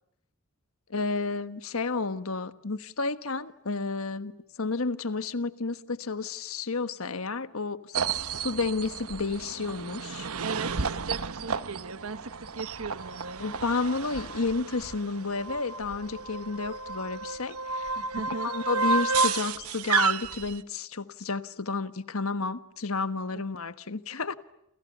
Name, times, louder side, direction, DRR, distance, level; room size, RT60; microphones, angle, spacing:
voice 1, 0.9-7.9 8.3-10.3 13.4-17.9 18.4-24.3, left 3 dB, 75° left, 1.4 m, -31 dB
sound 1, 7.9-20.6, right 4 dB, 90° right, 1.1 m, -31 dB
voice 2, 10.4-13.4 17.9-18.5 23.3-23.4, right 4 dB, 75° right, 1.5 m, -38 dB
29.0 x 29.0 x 6.9 m
head